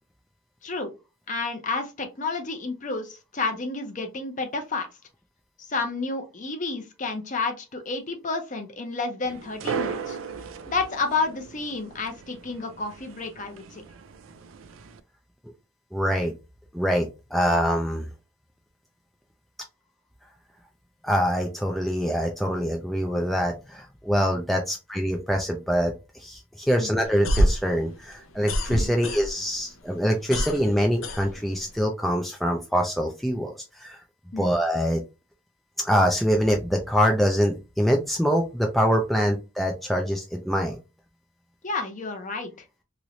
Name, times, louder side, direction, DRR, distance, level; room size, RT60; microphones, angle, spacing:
voice 1, 1.3-4.9 5.7-10.2 10.7-13.8 26.8-27.0 28.7-28.9 34.3-34.5 39.3-39.4 41.6-42.5, left 3 dB, 40° left, 6 dB, 0.7 m, -30 dB
sound 1, 9.2-15.0, right 6 dB, 80° right, 0.4 m, -37 dB
voice 2, 15.9-16.3 16.7-18.1 21.0-34.0 34.4-35.0 35.8-40.8, equal, ahead, 1 dB, 0.4 m, -24 dB
sound 2, 27.0-29.6 29.9-31.8, equal, 90° left, 0.7 m, -26 dB
3.1 x 3.0 x 2.5 m, 0.27 s
head